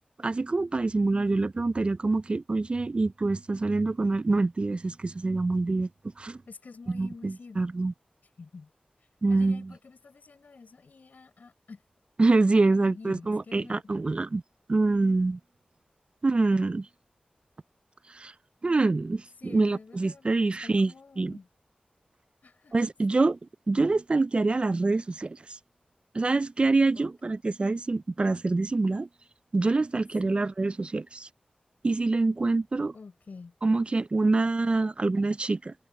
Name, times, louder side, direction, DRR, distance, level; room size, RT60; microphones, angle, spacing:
voice 1, 0.2-5.9 6.2-6.4 6.9-7.9 9.2-9.7 12.2-14.4 14.7-15.4 16.2-16.9 18.1-18.3 18.6-21.4 22.7-23.4 23.7-25.6 26.1-29.1 29.5-31.3 31.8-32.9 33.6-35.7, right 3 dB, 40° right, 0.4 m, -25 dB
voice 2, 6.5-7.6 8.4-8.7 9.3-11.8 12.5-14.0 19.4-21.5 22.4-22.7 26.9-27.3 30.2-30.4 32.9-33.5, left 4 dB, 70° left, 4.4 m, -48 dB
wide cardioid pair, 75°, 3 cm